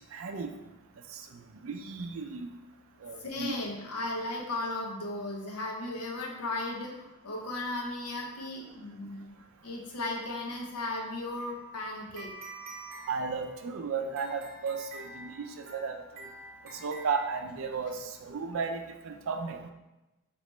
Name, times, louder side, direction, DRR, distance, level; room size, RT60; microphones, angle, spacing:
voice 1, 0.1-0.5 1.1-1.2 1.5-2.5 3.0-3.5 13.1-16.3 16.7-19.7, right 5 dB, 65° right, 5 dB, 0.4 m, -34 dB
voice 2, 3.2-9.3 9.6-12.3 17.8-17.9, left 2 dB, 85° left, 0 dB, 0.7 m, -36 dB
sound 1, 11.4-17.9, right 2 dB, 40° right, 0.8 m, -48 dB
3.2 x 2.9 x 3.0 m, 1.0 s
head